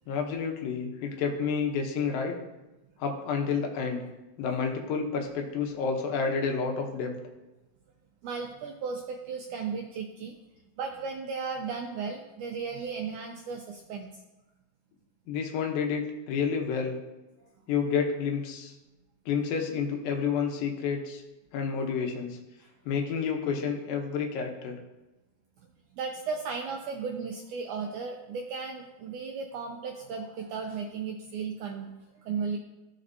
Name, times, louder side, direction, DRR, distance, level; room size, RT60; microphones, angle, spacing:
voice 1, 0.1-2.3 3.0-4.0 4.4-7.1 15.3-17.0 17.7-18.7 19.3-21.2 21.5-22.4 22.9-24.8, left 6 dB, 80° left, 2 dB, 2.6 m, -29 dB
voice 2, 8.2-10.4 10.8-14.1 22.6-22.7 25.9-31.9 32.3-32.6, right 5 dB, 85° right, 2 dB, 1.8 m, -35 dB
14.5 x 5.1 x 2.7 m, 1.0 s
omnidirectional pair, 4.1 m